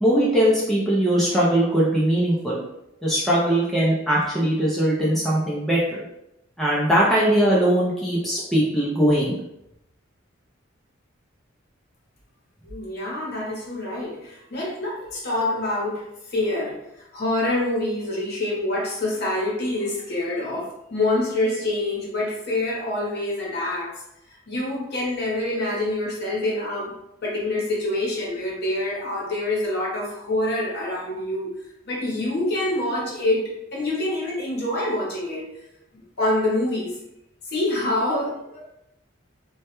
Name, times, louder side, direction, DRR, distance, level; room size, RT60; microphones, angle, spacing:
voice 1, 0.0-2.6 3.0-6.0 6.6-9.3, right 1 dB, ahead, -7 dB, 0.4 m, -20 dB
voice 2, 12.6-24.0 24.3-26.9 27.2-31.5 31.8-35.4 35.9-37.0 37.4-38.7, left 1 dB, 50° left, -4 dB, 0.8 m, -26 dB
2.2 x 2.1 x 2.9 m, 0.85 s
head